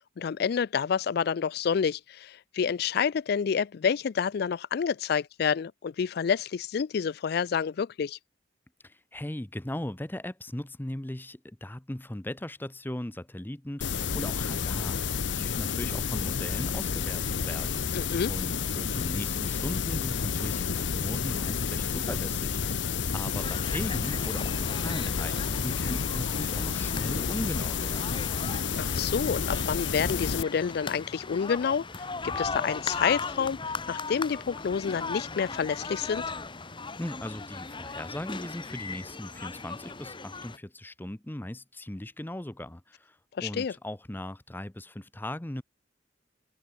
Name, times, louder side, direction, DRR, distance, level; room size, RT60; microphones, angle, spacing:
voice 1, 0.0-8.2 17.9-18.3 28.8-36.2 43.4-43.7, left 6 dB, 60° left, 0.4 m, -29 dB
voice 2, 8.8-17.9 18.3-28.2 37.0-45.6, left 1 dB, 10° left, 0.8 m, -38 dB
sound 1, 13.8-30.4, left 6 dB, 85° left, 0.8 m, -30 dB
sound 2, 23.3-40.6, left 4 dB, 25° left, 1.5 m, -38 dB
open air
head